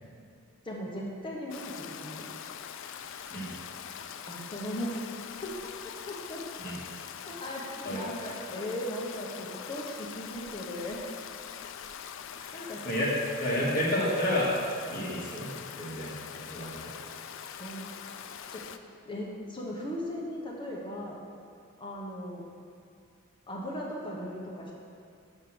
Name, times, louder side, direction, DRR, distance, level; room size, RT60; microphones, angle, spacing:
voice 1, 0.6-2.2 4.3-5.0 5.4-6.5 7.2-11.1 12.5-12.8 17.6-17.9 18.5-18.6 19.1-21.2 21.8-22.4 23.5-24.7, equal, 25° left, -3 dB, 1.0 m, -38 dB
Stream, 1.5-18.8, left 8 dB, 60° left, 0.4 m, -43 dB
voice 2, 12.4-13.1 13.4-14.5 14.9-15.5 15.8-16.9, left 1 dB, 45° left, -6 dB, 1.8 m, -31 dB
6.4 x 5.3 x 6.2 m, 2.4 s
head